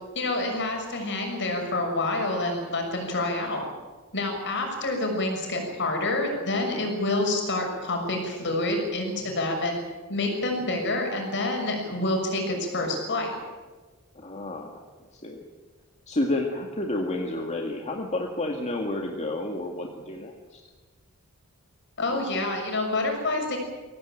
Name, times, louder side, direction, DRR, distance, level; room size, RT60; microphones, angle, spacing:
voice 1, 0.1-3.6 4.1-9.8 10.1-13.4 22.0-23.6, left 2 dB, 55° left, 3 dB, 6.4 m, -27 dB
voice 2, 14.2-14.8 15.1-15.4 16.1-20.6, left 1 dB, 30° left, 1 dB, 2.0 m, -30 dB
23.5 x 17.0 x 9.0 m, 1.4 s
head